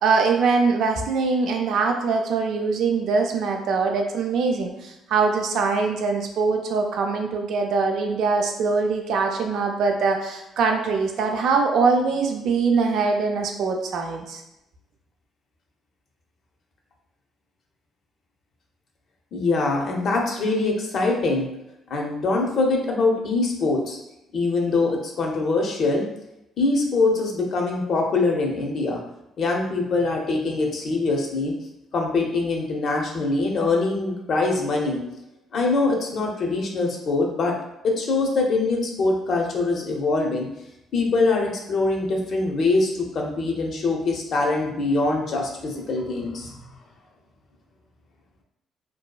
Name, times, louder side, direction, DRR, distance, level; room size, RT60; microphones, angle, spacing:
voice 1, 0.0-14.4, right 4 dB, 70° right, 3 dB, 0.4 m, -23 dB
voice 2, 19.3-21.5 21.9-24.0 24.3-26.0 26.6-29.0 29.4-31.5 31.9-35.0 35.5-37.5 37.8-40.5 40.9-46.6, left 3 dB, 60° left, 0 dB, 0.6 m, -23 dB
2.7 x 2.2 x 2.2 m, 0.88 s
supercardioid pair, 70°, 0 cm